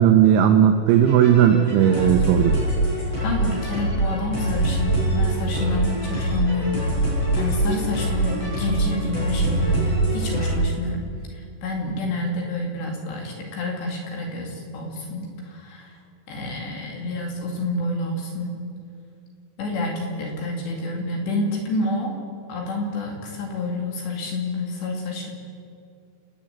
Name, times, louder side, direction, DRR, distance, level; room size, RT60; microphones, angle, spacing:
voice 1, 0.0-2.5, right 9 dB, 85° right, 5 dB, 3.3 m, -16 dB
sound 1, 0.9-10.6, right 1 dB, 35° left, 7.8 m, -24 dB
voice 2, 3.2-11.0 11.3-16.0 16.3-18.6 19.6-22.2 22.5-25.3, left 2 dB, 70° left, 0 dB, 4.3 m, -28 dB
29.0 x 10.5 x 8.8 m, 2.3 s
omnidirectional pair, 5.4 m